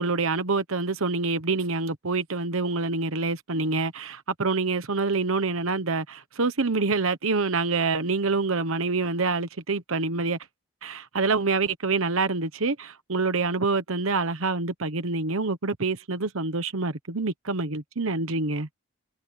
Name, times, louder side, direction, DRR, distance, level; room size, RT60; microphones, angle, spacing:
voice 1, 0.0-10.4 10.8-18.7, right 3 dB, 70° right, 1.2 m, -26 dB
head